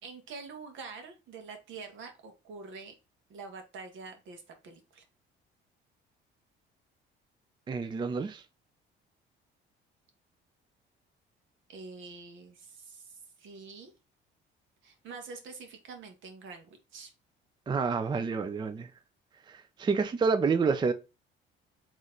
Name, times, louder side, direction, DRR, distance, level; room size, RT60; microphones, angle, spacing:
voice 1, 0.0-2.9 3.3-5.0 11.7-13.9 14.8-17.1, right 4 dB, 70° right, 1.4 m, -46 dB
voice 2, 7.7-8.4 17.7-18.9 19.5-20.9, right 5 dB, 20° right, 0.4 m, -28 dB
4.1 x 3.1 x 3.8 m
cardioid pair, 110°, 20 cm